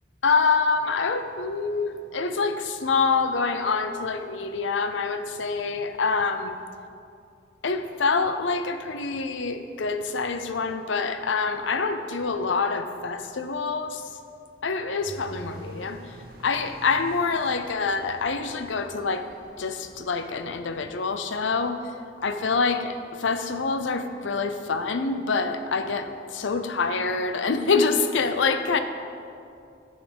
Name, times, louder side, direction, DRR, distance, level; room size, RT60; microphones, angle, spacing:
voice 1, 0.2-6.6 7.6-14.0 14.6-16.0 16.4-19.2 19.6-21.8 22.2-28.8, left 4 dB, 75° left, 9 dB, 0.6 m, -26 dB
sound 1, 15.1-20.9, right 1 dB, 50° right, 0.9 m, -47 dB
10.0 x 6.4 x 5.2 m, 2.5 s
head